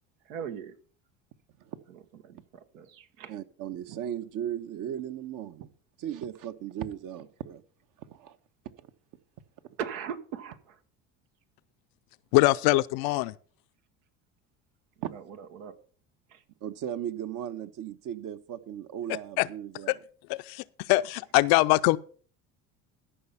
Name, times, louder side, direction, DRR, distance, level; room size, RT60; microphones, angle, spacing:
voice 1, 0.2-0.7 1.9-3.4 9.8-10.8 15.0-15.8 16.3-16.4 21.1-21.2, right 8 dB, 85° right, 1.3 m, -40 dB
voice 2, 3.3-5.7 6.0-7.6 8.0-8.4 15.0-15.1 16.6-20.0, right 10 dB, 55° right, 1.1 m, -36 dB
voice 3, 12.3-13.3 19.4-19.5 19.9-20.0 20.3-22.0, left 20 dB, 65° left, 0.6 m, -23 dB
13.5 x 5.7 x 5.6 m
supercardioid pair, 85°, 39 cm